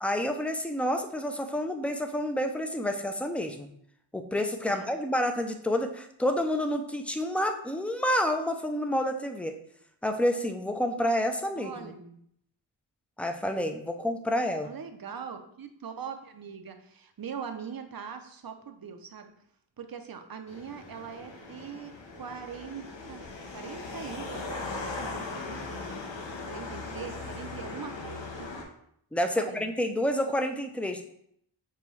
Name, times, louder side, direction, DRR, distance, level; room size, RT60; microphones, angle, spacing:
voice 1, 0.0-3.7 4.1-9.6 10.0-11.9 13.2-14.7 29.1-31.0, left 1 dB, 5° left, 5 dB, 0.4 m, -29 dB
voice 2, 11.6-12.2 14.6-19.3 19.8-25.8 26.5-28.5 29.4-29.6, right 7 dB, 50° right, 6 dB, 0.6 m, -42 dB
sound 1, 20.5-28.6, left 3 dB, 70° left, 0.8 m, -39 dB
6.7 x 2.3 x 3.1 m, 0.70 s
wide cardioid pair, 60°, 47 cm